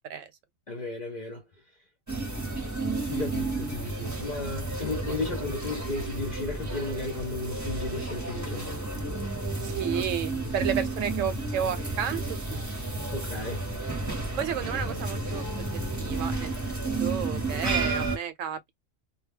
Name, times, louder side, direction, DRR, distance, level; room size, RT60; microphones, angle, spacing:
voice 1, 0.7-1.4 3.0-8.7 13.1-13.7, left 3 dB, 50° left, 0.5 m, -34 dB
sound 1, 2.1-18.2, right 3 dB, 15° right, 0.6 m, -32 dB
voice 2, 9.6-12.7 14.4-18.7, right 8 dB, 75° right, 0.9 m, -32 dB
2.2 x 2.1 x 3.4 m
omnidirectional pair, 1.4 m